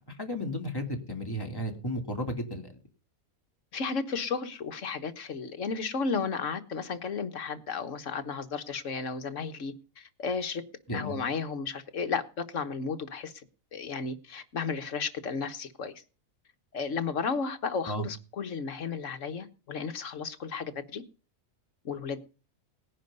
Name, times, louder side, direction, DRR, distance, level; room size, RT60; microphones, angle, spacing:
voice 1, 0.1-2.7 10.9-11.2 17.9-18.1, equal, 15° left, 3 dB, 2.8 m, -33 dB
voice 2, 3.7-10.6 10.9-13.3 13.7-15.9 16.7-21.0 21.8-22.2, left 5 dB, 65° left, 9 dB, 1.6 m, -33 dB
18.5 x 10.0 x 5.5 m, 0.36 s
omnidirectional pair, 1.4 m